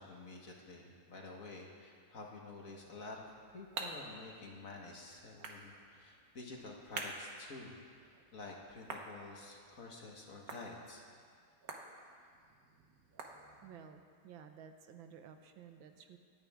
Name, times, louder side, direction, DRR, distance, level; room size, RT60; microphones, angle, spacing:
voice 1, 0.0-7.7 8.0-11.0, left 3 dB, 45° left, -1 dB, 1.7 m, -50 dB
sound 1, 3.0-13.9, right 3 dB, 55° right, 1.4 m, -50 dB
voice 2, 13.6-16.2, right 7 dB, 80° right, 7 dB, 1.6 m, -54 dB
26.5 x 9.4 x 3.6 m, 2.1 s
omnidirectional pair, 2.2 m